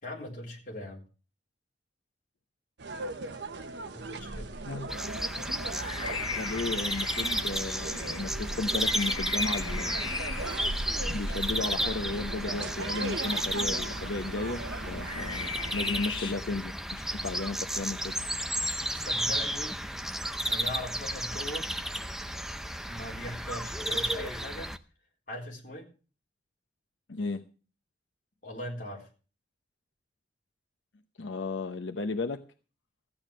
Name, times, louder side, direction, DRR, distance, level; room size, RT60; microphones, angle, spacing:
voice 1, 0.0-1.0 3.9-4.5 18.9-19.8 20.5-21.7 22.9-24.7 25.3-25.9 28.4-29.1, left 1 dB, 45° left, -1 dB, 4.1 m, -40 dB
sound 1, 2.8-16.1, right 2 dB, 75° right, 1.0 m, -39 dB
voice 2, 4.6-5.0 5.4-5.5 6.4-10.0 11.0-18.2 27.1-27.4 31.2-32.4, left 3 dB, 90° left, 7 dB, 0.8 m, -34 dB
sound 2, 4.9-24.8, equal, ahead, 0.5 m, -33 dB
sound 3, 5.6-16.3, left 4 dB, 25° left, 1.1 m, -39 dB
14.5 x 8.8 x 6.2 m, 0.36 s
head